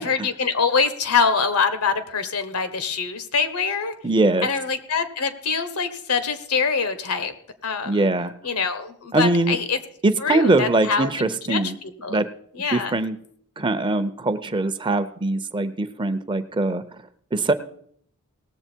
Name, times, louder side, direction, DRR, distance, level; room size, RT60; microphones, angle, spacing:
voice 1, 0.0-3.9 4.4-7.3 7.6-8.1 8.4-9.8 10.2-12.2 12.5-13.0, left 5 dB, 85° left, 10 dB, 1.3 m, -24 dB
voice 2, 4.0-4.5 7.9-8.3 9.1-9.6 10.0-11.8 12.1-12.3 12.7-13.2 13.6-16.8 17.3-17.5, right 2 dB, 20° right, 11 dB, 0.6 m, -22 dB
18.5 x 7.4 x 4.5 m, 0.64 s
head